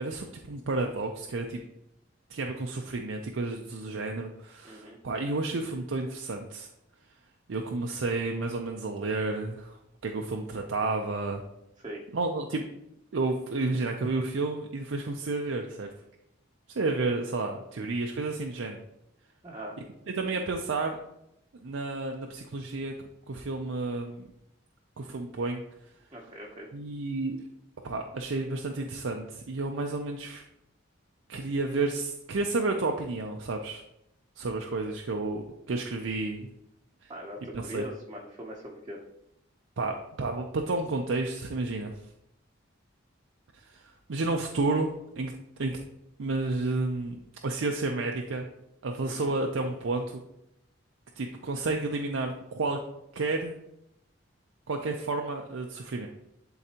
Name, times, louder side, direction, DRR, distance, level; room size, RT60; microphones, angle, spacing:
voice 1, 0.0-1.6 2.3-6.7 7.5-9.8 10.0-11.4 12.1-12.6 13.1-15.9 16.7-18.8 20.2-21.0 21.5-22.9 23.3-24.2 25.0-25.6 26.7-27.4 27.8-30.4 31.3-33.8 34.4-36.5 37.0-37.1 37.5-37.9 39.8-41.9 43.7-45.3 45.6-45.8 46.2-47.2 47.4-48.5 48.8-50.2 51.2-52.8 53.1-53.5 54.7-56.1, right 3 dB, 80° right, 3 dB, 0.5 m, -31 dB
voice 2, 4.6-5.0 11.8-12.0 19.4-19.7 26.1-26.7 37.1-39.0 49.0-49.3, equal, 20° right, -3 dB, 0.8 m, -41 dB
10.5 x 3.9 x 2.9 m, 0.83 s
head